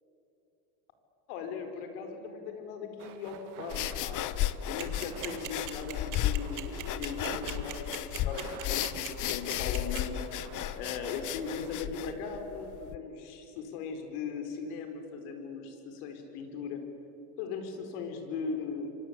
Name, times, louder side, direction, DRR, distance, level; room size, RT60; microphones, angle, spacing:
voice 1, 1.3-4.3 4.7-10.1 10.8-16.8 17.4-18.9, left 5 dB, 70° left, 6 dB, 5.0 m, -38 dB
sound 1, 3.0-11.8, right 11 dB, 70° right, 2.0 m, -48 dB
sound 2, 3.7-13.0, left 13 dB, 40° left, 0.9 m, -34 dB
sound 3, 4.8-10.0, right 13 dB, 40° right, 2.3 m, -39 dB
28.0 x 24.0 x 8.4 m, 2.8 s
supercardioid pair, 115°, 46 cm